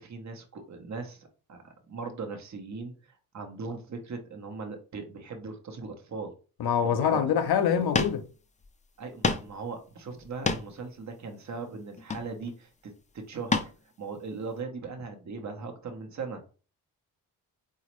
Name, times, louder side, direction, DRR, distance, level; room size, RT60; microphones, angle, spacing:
voice 1, 0.0-6.3 6.8-7.3 7.8-7.9 9.0-13.7 14.0-16.4, right 4 dB, 45° right, 0.9 m, -39 dB
voice 2, 6.6-8.2, left 8 dB, 70° left, 0.7 m, -25 dB
sound 1, 7.7-7.8 7.9-8.2 8.6-8.7 9.2-9.5 10.2-10.8 12.0-12.5 13.5-13.7 14.2-14.3, left 4 dB, 20° left, 0.4 m, -28 dB
4.0 x 2.4 x 3.0 m
cardioid pair, 60°, 40 cm